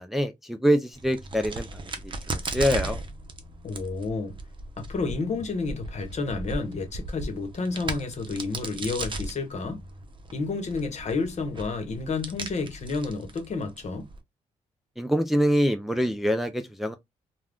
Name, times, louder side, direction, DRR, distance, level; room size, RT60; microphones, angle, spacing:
voice 1, 0.0-1.7 2.5-3.0 15.0-16.9, equal, ahead, 0.5 m, -24 dB
Crack, 0.9-14.2, right 2 dB, 35° right, 0.7 m, -37 dB
voice 2, 3.6-4.4 4.8-9.8 10.3-14.1, left 3 dB, 55° left, 1.0 m, -30 dB
2.4 x 2.3 x 3.4 m
cardioid pair, 75°, 14 cm